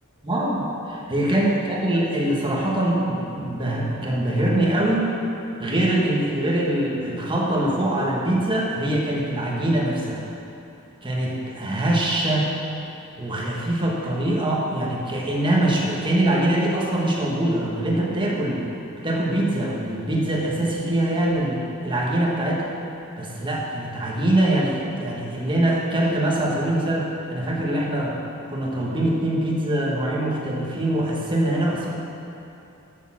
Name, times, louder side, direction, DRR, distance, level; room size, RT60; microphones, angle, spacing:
voice 1, 0.2-5.1 5.6-10.2 11.0-12.5 13.2-18.6 19.0-22.7 23.2-28.1 28.5-32.0, right 1 dB, 20° right, -4 dB, 1.4 m, -23 dB
6.7 x 6.5 x 7.3 m, 2.8 s
head